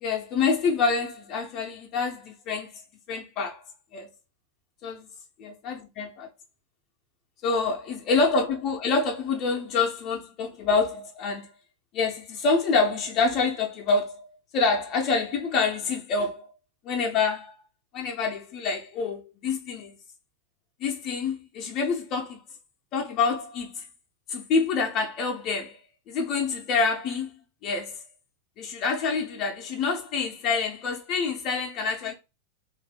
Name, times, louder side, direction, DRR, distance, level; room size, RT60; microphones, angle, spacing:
voice 1, 0.0-2.8 3.1-3.6 3.9-4.1 4.8-5.1 5.4-6.3 7.4-11.5 11.9-16.5 16.8-17.5 17.9-19.9 20.8-22.4 22.9-23.8 24.3-25.8 26.1-27.3 27.6-28.0 28.6-32.1, left 4 dB, 35° left, 0.5 m, -27 dB
2.7 x 2.3 x 3.3 m
figure-of-eight pair, 90°, 0 cm